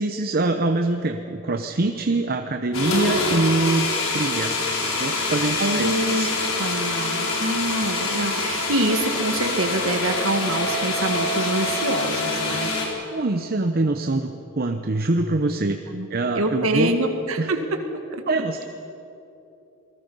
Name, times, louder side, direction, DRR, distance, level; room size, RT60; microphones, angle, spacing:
voice 1, 0.0-4.6 5.0-6.3 13.1-15.8 16.1-17.0 17.4-17.5 18.3-18.6, right 2 dB, 45° right, 6 dB, 0.8 m, -24 dB
sound 1, 2.7-12.9, left 2 dB, 85° left, 4.1 m, -25 dB
voice 2, 5.6-6.3 6.6-12.7 15.9-17.6 17.9-18.2, right 1 dB, 80° right, 5 dB, 1.8 m, -25 dB
27.5 x 20.0 x 5.5 m, 3.0 s
head